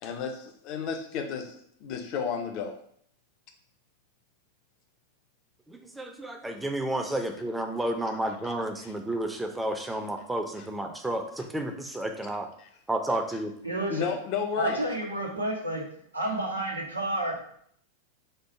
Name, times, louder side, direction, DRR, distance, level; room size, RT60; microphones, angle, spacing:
voice 1, 0.0-2.8 8.1-8.2 8.4-8.9 9.8-10.0 10.6-10.7 12.6-12.7 13.9-14.8, left 6 dB, 40° left, 5 dB, 0.7 m, -33 dB
voice 2, 5.7-12.5 12.9-13.5, right 1 dB, 5° right, 4 dB, 0.6 m, -31 dB
voice 3, 13.6-14.1 14.6-15.8 16.1-17.4, right 1 dB, 85° right, -2 dB, 1.1 m, -30 dB
4.5 x 2.4 x 4.7 m, 0.65 s
figure-of-eight pair, 90°, 0 cm